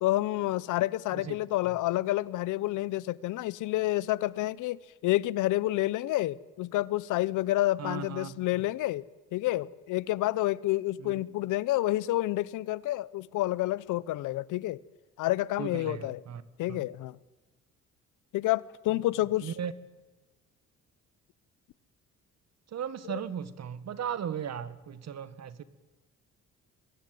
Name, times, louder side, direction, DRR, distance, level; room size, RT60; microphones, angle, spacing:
voice 1, 0.0-9.0 9.3-14.8 15.2-16.2 16.6-17.2 18.3-19.5 23.0-23.2, left 16 dB, 90° left, 0.8 m, -29 dB
voice 2, 7.8-8.4 11.0-11.1 15.6-16.4 16.7-16.8 19.4-19.7 22.7-25.6, right 8 dB, 60° right, 1.7 m, -36 dB
24.0 x 20.5 x 9.3 m
cardioid pair, 90°, 30 cm